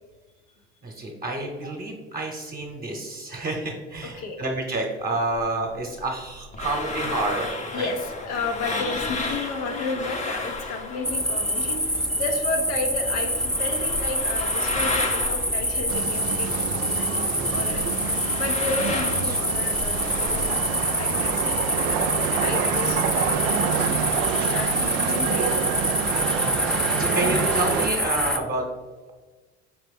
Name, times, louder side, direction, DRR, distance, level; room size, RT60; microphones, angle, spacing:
voice 1, 0.8-7.9 17.3-17.6 19.3-19.5 26.4-28.6, right 2 dB, 25° right, 1 dB, 0.9 m, -29 dB
voice 2, 4.0-4.4 7.7-16.5 17.0-18.0 18.4-22.0 22.4-24.0 24.3-25.7, left 3 dB, 80° left, 3 dB, 0.8 m, -32 dB
sound 1, 5.4-12.1 12.3-16.9 17.2-20.7, left 3 dB, 20° left, 0.7 m, -33 dB
sound 2, 11.0-28.4, equal, ahead, 0.3 m, -26 dB
sound 3, 15.9-27.9, right 8 dB, 65° right, 0.4 m, -28 dB
5.0 x 2.9 x 3.4 m, 1.3 s
hypercardioid pair, 70°, 33 cm